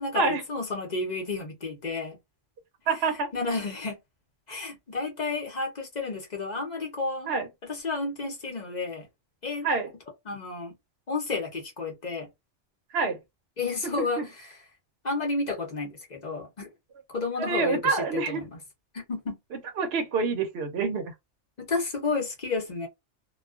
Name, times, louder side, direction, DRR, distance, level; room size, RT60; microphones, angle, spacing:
voice 1, 0.0-2.2 3.3-4.0 4.5-7.3 7.7-9.1 9.4-9.7 10.3-10.7 11.1-12.3 13.6-14.7 15.0-16.7 17.1-18.5 18.9-19.4 21.6-22.9, left 3 dB, 40° left, 0.8 m, -31 dB
voice 2, 2.9-3.3 7.3-7.5 9.6-9.9 12.9-13.2 14.0-14.2 17.4-18.4 19.8-21.1, right 4 dB, 65° right, 0.8 m, -27 dB
2.3 x 2.3 x 2.3 m
omnidirectional pair, 1.3 m